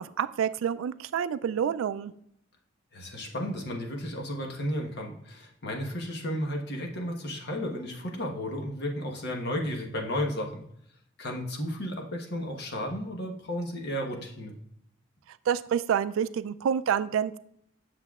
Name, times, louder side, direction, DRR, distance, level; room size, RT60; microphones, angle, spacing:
voice 1, 0.0-2.1 15.5-17.4, right 8 dB, 85° right, 15 dB, 0.3 m, -28 dB
voice 2, 2.9-10.6 11.2-14.6, equal, 55° left, 2 dB, 1.1 m, -33 dB
8.1 x 6.6 x 2.4 m, 0.69 s
head